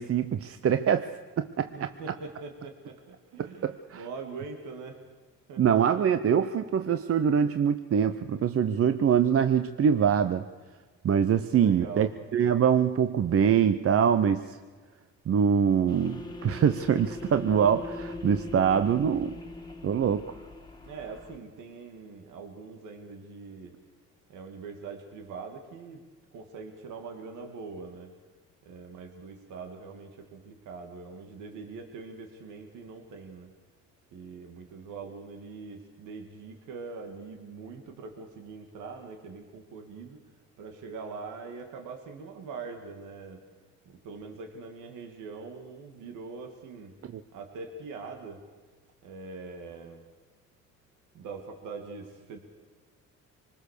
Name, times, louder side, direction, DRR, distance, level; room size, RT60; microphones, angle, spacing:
voice 1, 0.0-1.7 3.4-4.0 5.6-10.5 11.0-14.6 15.3-19.4 19.8-20.3 47.1-47.2, right 8 dB, 50° right, 10 dB, 0.8 m, -24 dB
voice 2, 1.7-5.0 5.5-5.6 11.6-12.1 20.9-23.7 24.3-26.0 26.3-28.1 28.6-33.5 34.1-40.2 40.6-43.4 43.9-46.9 47.3-48.4 49.0-50.0 51.1-52.4, right 4 dB, 90° right, 4 dB, 2.4 m, -42 dB
sound 1, 15.9-21.4, left 2 dB, 15° left, 1.9 m, -40 dB
25.0 x 20.0 x 6.7 m, 1.4 s
cardioid pair, 90°, 30 cm